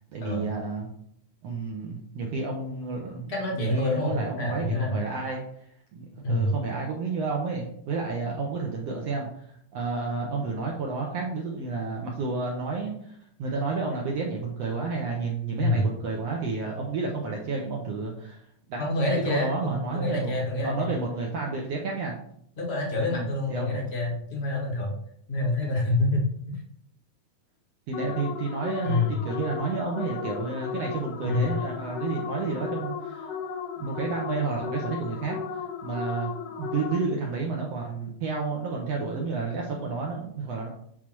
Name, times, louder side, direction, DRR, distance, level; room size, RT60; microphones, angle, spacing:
voice 1, 0.1-0.9 1.4-5.4 5.9-18.4 18.7-18.8 19.2-22.2 23.1-23.9 27.9-33.3 33.8-40.7, right 4 dB, 70° right, -1 dB, 1.6 m, -31 dB
voice 2, 3.3-5.0 6.2-6.5 15.6-15.8 18.8-20.9 22.6-24.9 25.3-26.5 28.8-29.2 31.2-31.6, left 2 dB, 60° left, -2 dB, 0.6 m, -27 dB
sound 1, 27.9-37.3, left 7 dB, 75° left, 2.0 m, -35 dB
8.6 x 4.1 x 4.6 m, 0.67 s
omnidirectional pair, 4.0 m